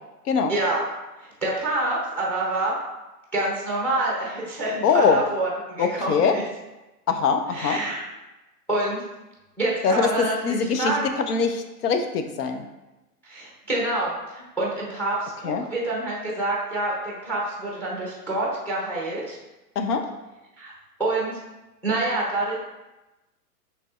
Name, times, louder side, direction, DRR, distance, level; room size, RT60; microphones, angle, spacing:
voice 1, 0.5-0.8 1.2-2.7 3.3-6.4 7.5-8.0 8.7-9.0 9.6-10.3 10.8-11.2 13.2-19.4 20.6-20.7 21.0-21.4 21.8-22.6, right 2 dB, 5° left, -3 dB, 0.5 m, -27 dB
voice 2, 4.8-5.2 5.8-6.3 7.1-7.8 9.8-10.9 11.3-12.6 15.4-15.6 19.8-20.0, left 5 dB, 75° left, 7 dB, 0.7 m, -22 dB
5.8 x 3.2 x 2.4 m, 1.0 s
hypercardioid pair, 140°, 47 cm